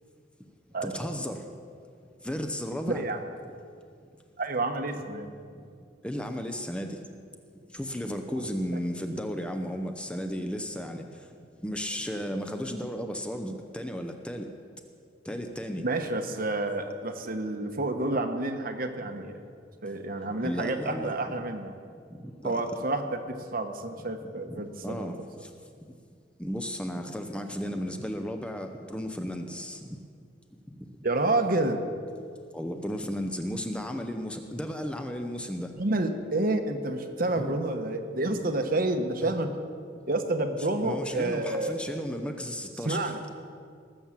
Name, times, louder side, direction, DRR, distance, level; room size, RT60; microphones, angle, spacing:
voice 1, 0.8-1.4 2.2-3.0 6.0-7.0 7.7-11.1 11.6-14.5 15.3-15.8 20.4-21.5 22.2-22.8 24.5-25.1 26.4-29.9 32.5-35.7 37.4-37.6 39.2-39.3 40.8-43.1, equal, 5° left, 5 dB, 0.7 m, -34 dB
voice 2, 2.9-3.2 4.4-5.3 15.8-19.5 19.8-21.7 22.4-25.2 31.0-31.8 35.8-39.7 40.1-41.8 42.8-43.2, right 2 dB, 50° right, 6 dB, 1.1 m, -29 dB
19.0 x 7.2 x 7.4 m, 2.2 s
head